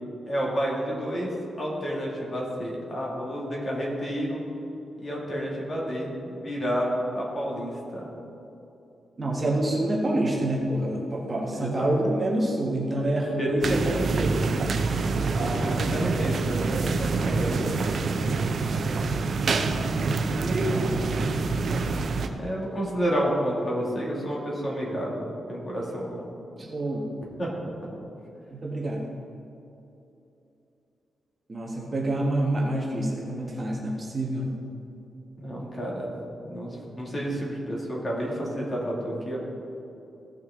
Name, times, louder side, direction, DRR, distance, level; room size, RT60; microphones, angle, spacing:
voice 1, 0.3-1.3 1.6-4.4 5.0-8.1 11.6-11.9 13.4-13.8 15.3-17.5 22.4-26.2 27.4-27.5 35.4-36.1 36.4-39.4, equal, 30° left, -4 dB, 2.2 m, -30 dB
voice 2, 9.2-14.5 20.0-21.6 26.6-27.1 28.5-29.1 31.5-34.6, right 1 dB, 25° right, -2 dB, 1.2 m, -27 dB
sound 1, 13.6-22.3, right 4 dB, 50° right, 0.6 m, -26 dB
15.5 x 6.3 x 3.6 m, 2.8 s
wide cardioid pair, 155°, 0 cm